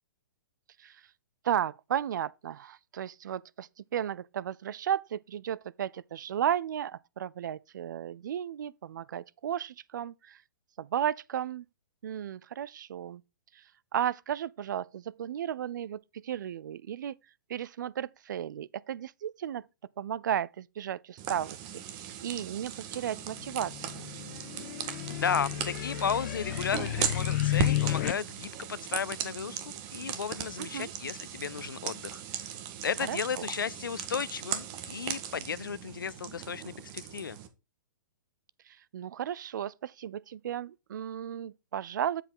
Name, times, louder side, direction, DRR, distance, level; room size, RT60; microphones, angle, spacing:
voice 1, 1.4-10.4 10.8-11.7 12.0-13.2 13.5-13.6 13.9-17.2 17.5-19.7 20.0-24.1 30.6-30.9 33.1-33.5 38.7-42.2, right 10 dB, 65° right, 0.5 m, -34 dB
sound 1, 21.2-37.5, right 9 dB, 35° right, 1.6 m, -38 dB
sound 2, 23.2-28.1, left 14 dB, 50° left, 1.1 m, -32 dB
voice 2, 25.1-32.5 32.8-37.4, left 7 dB, 85° left, 0.5 m, -34 dB
8.0 x 7.6 x 3.8 m
hypercardioid pair, 125°, 11 cm